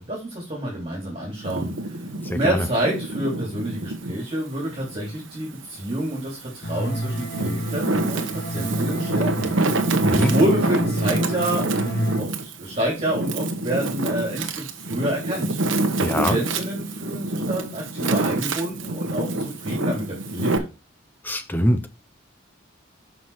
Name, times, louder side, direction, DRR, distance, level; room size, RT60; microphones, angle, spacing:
voice 1, 0.0-2.0 2.3-9.8 10.1-15.8 16.2-20.7, right 1 dB, 30° right, 3.0 m, -28 dB
Wind, 1.4-4.2 4.7-6.0 6.6-20.6, right 2 dB, 70° right, 1.1 m, -26 dB
voice 2, 2.2-2.7 10.0-10.4 16.0-16.4 21.2-21.9, equal, 10° left, 0.8 m, -23 dB
sound 1, 6.6-12.2, right 1 dB, 50° left, 2.0 m, -29 dB
6.0 x 5.8 x 4.8 m
head